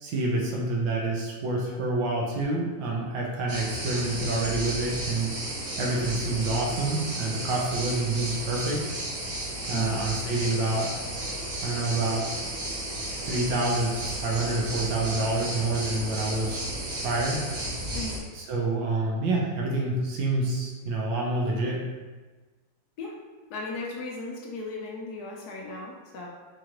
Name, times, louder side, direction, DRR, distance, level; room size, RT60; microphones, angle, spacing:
voice 1, 0.0-5.3 5.8-8.8 9.7-10.9 11.6-12.2 13.2-16.6 17.0-17.4 18.3-21.8, right 2 dB, 80° right, -2 dB, 1.4 m, -27 dB
sound 1, 3.5-18.2, right 1 dB, 55° right, 1.2 m, -33 dB
voice 2, 9.7-10.0 17.9-18.2 23.0-23.2 23.5-26.3, left 3 dB, 70° left, -1 dB, 0.9 m, -36 dB
4.5 x 2.4 x 2.9 m, 1.3 s
omnidirectional pair, 2.1 m